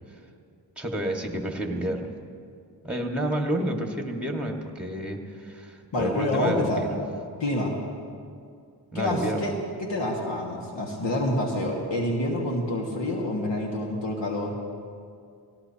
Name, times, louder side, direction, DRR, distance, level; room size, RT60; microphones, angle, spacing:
voice 1, 0.8-2.1 2.8-6.9 8.9-9.6, right 1 dB, ahead, 2 dB, 1.9 m, -29 dB
voice 2, 5.9-6.8 7.4-7.8 8.9-9.5 9.8-14.6, left 1 dB, 65° left, -1 dB, 2.0 m, -27 dB
18.0 x 17.5 x 3.0 m, 2.3 s
cardioid pair, 55°, 46 cm